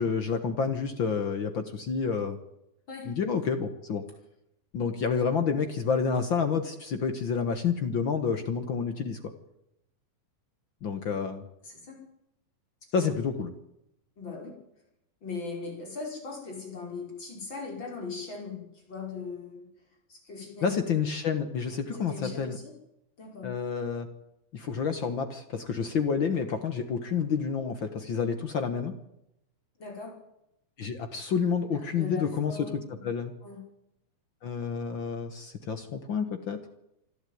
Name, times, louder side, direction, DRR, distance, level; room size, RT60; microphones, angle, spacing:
voice 1, 0.0-2.4 3.0-4.0 4.7-9.2 10.8-11.4 12.9-13.5 20.6-22.6 23.4-24.1 24.5-28.9 30.8-32.7 33.0-33.3 34.4-36.6, left 6 dB, 75° left, 8 dB, 1.1 m, -29 dB
voice 2, 11.6-12.0 13.0-13.1 14.2-14.6 15.2-19.7 20.1-20.7 21.9-22.7 23.2-23.5 29.8-30.1 31.7-33.1 33.4-33.6, left 4 dB, 30° left, 0 dB, 5.8 m, -39 dB
27.0 x 12.0 x 9.4 m, 0.84 s
omnidirectional pair, 4.3 m